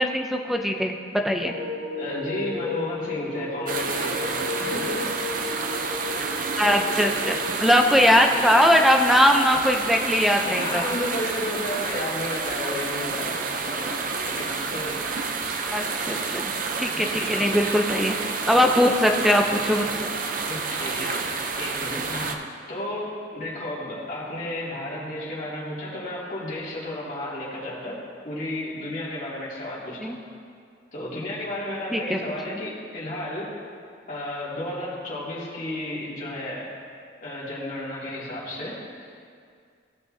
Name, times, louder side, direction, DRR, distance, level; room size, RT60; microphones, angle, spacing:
voice 1, 0.0-1.5 6.6-10.9 15.7-16.5 16.8-18.1 18.5-20.1 30.0-30.2 31.9-32.2, equal, ahead, 3 dB, 0.5 m, -21 dB
sound 1, 1.4-8.3, left 2 dB, 70° right, 1.0 m, -34 dB
voice 2, 2.0-5.1 9.9-10.0 10.4-15.0 17.1-17.5 20.5-21.2 21.6-28.0 28.2-30.1 30.9-33.5 34.1-36.7 37.2-38.8, left 1 dB, 45° left, -7 dB, 2.4 m, -33 dB
sound 2, 3.7-22.3, right 4 dB, 50° right, 0.6 m, -29 dB
16.0 x 6.1 x 2.7 m, 2.2 s
head